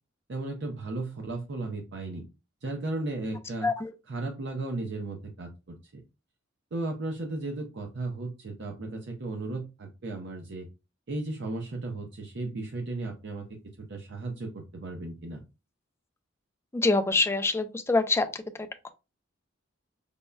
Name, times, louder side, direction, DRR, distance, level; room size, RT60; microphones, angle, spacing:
voice 1, 0.3-2.2 2.6-3.7 4.1-6.0 6.7-10.7 11.1-13.5 13.9-15.4, right 2 dB, 60° right, 0.6 m, -35 dB
voice 2, 16.7-18.3 18.8-18.9, left 3 dB, 15° left, 0.4 m, -25 dB
5.1 x 2.1 x 2.2 m
head